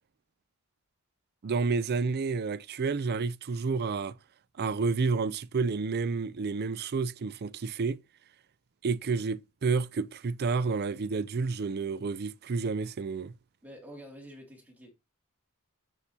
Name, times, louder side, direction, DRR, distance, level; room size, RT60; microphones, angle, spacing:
voice 1, 1.4-4.1 4.6-8.0 8.8-13.3, right 4 dB, 45° right, 0.4 m, -30 dB
voice 2, 13.6-14.9, equal, 5° right, 2.5 m, -48 dB
7.9 x 7.2 x 2.8 m
head